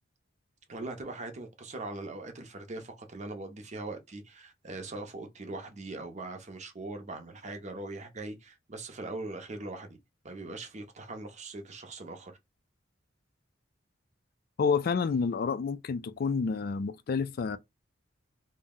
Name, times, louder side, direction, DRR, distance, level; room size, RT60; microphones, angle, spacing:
voice 1, 0.7-10.0 10.2-12.3, right 2 dB, 35° right, 0.6 m, -41 dB
voice 2, 14.6-17.6, left 5 dB, 45° left, 0.3 m, -29 dB
2.7 x 2.1 x 3.5 m
head